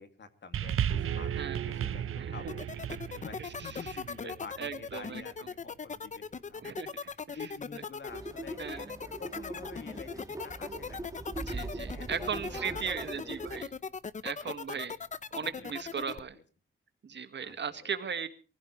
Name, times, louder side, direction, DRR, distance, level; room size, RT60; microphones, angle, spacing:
voice 1, 0.0-2.6 3.1-11.0 11.8-12.9 13.2-13.5 14.4-14.9 15.4-16.2 17.4-17.9, left 5 dB, 55° left, 8 dB, 2.3 m, -49 dB
sound 1, 0.5-5.1 5.9-6.0, right 9 dB, 85° right, 0.8 m, -35 dB
sound 2, 2.5-16.2, left 5 dB, 35° left, 0.7 m, -39 dB
voice 2, 3.4-5.3 6.6-6.9 7.3-7.5 8.6-8.9 11.4-13.7 14.2-14.9 15.3-16.4 17.0-18.3, right 6 dB, 55° right, 10 dB, 1.6 m, -37 dB
sound 3, 8.1-13.6, right 2 dB, 15° right, 1.8 m, -41 dB
23.5 x 16.0 x 3.1 m, 0.37 s
wide cardioid pair, 135°, 21 cm